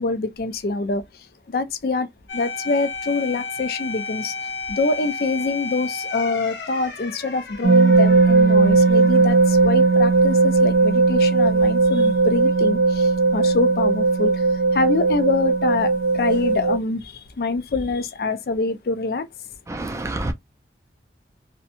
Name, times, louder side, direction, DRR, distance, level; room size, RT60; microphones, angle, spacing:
voice 1, 0.0-2.1 2.3-19.3, left 3 dB, 55° left, 0.4 m, -25 dB
sound 1, 2.3-10.9 11.3-11.4 16.3-16.8, left 4 dB, 85° left, 0.8 m, -34 dB
sound 2, 7.6-16.8, right 3 dB, 85° right, 0.6 m, -17 dB
voice 2, 19.7-20.3, right 2 dB, 15° right, 0.3 m, -27 dB
2.6 x 2.1 x 2.6 m
head